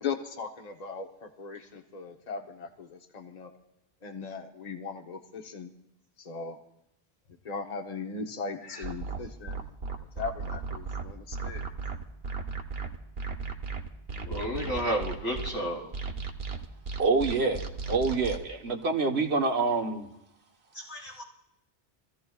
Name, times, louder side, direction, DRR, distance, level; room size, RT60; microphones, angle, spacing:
voice 1, 0.0-1.1 1.4-3.5 4.0-5.7 6.3-6.6 7.4-9.6 10.2-11.7, left 5 dB, 40° left, 5 dB, 1.1 m, -38 dB
sound 1, 8.8-15.5 15.9-18.4, right 4 dB, 70° right, 1.2 m, -35 dB
voice 2, 14.2-15.8 20.8-21.2, equal, 85° left, -3 dB, 3.6 m, -31 dB
voice 3, 17.0-17.6 17.9-20.1, right 4 dB, 85° right, 3 dB, 1.5 m, -26 dB
27.0 x 15.0 x 2.4 m, 0.82 s
omnidirectional pair, 1.1 m